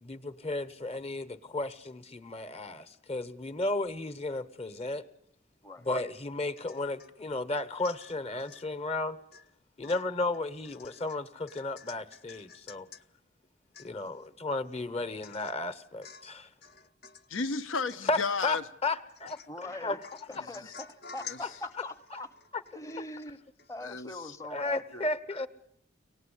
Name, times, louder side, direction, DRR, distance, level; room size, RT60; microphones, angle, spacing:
voice 1, 0.0-5.0 5.8-9.2 9.8-12.9 13.8-16.5 18.1-20.0 20.3-20.4 21.4-21.5 22.5-22.6 24.5-25.5, left 2 dB, 30° left, 1.0 m, -34 dB
Domestic sounds home sounds / Chink clink / Drip, 6.6-7.1 7.5-8.7 9.3-9.5 9.8-13.0 13.4-13.5 13.7-14.3 14.7-14.8 15.2-15.6 16.0-16.4 16.6-17.3 17.9-18.6 19.1-19.6 20.0-23.3 23.6-23.7, left 6 dB, 55° left, 0.9 m, -50 dB
voice 2, 17.3-18.6 20.4-20.7 21.2-21.4 23.8-24.2, left 4 dB, 80° left, 0.9 m, -33 dB
voice 3, 19.5-20.0 20.3-22.3 22.7-23.4 23.7-25.1, left 1 dB, 15° left, 0.9 m, -42 dB
24.0 x 18.5 x 10.0 m
head